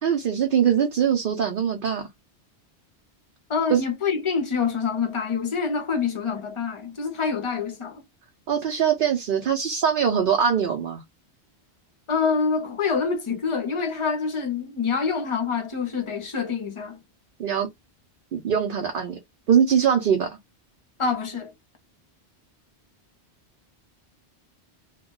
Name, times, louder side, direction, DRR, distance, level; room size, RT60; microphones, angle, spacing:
voice 1, 0.0-2.1 3.7-3.8 8.5-11.0 17.4-17.7 18.3-19.2 19.5-20.4, right 8 dB, 60° right, 0.7 m, -22 dB
voice 2, 3.5-8.0 12.1-17.0 21.0-21.5, left 5 dB, 35° left, 0.6 m, -26 dB
2.3 x 2.1 x 3.6 m
omnidirectional pair, 1.2 m